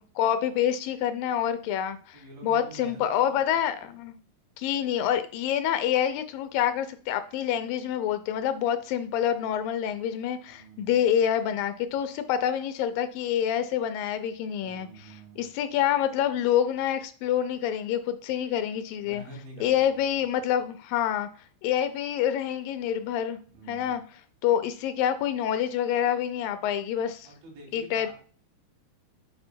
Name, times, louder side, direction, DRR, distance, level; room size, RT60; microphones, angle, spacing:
voice 1, 0.0-4.1 4.6-14.9 15.4-19.2 19.6-21.3 21.6-23.4 23.7-24.0 24.4-27.3 27.7-28.1, left 10 dB, 80° left, 11 dB, 2.3 m, -27 dB
voice 2, 2.1-3.6 10.5-10.9 14.6-15.5 19.0-20.2 23.5-24.0 27.2-28.1, right 2 dB, 75° right, 0 dB, 4.3 m, -47 dB
9.6 x 4.7 x 2.2 m, 0.41 s
omnidirectional pair, 4.1 m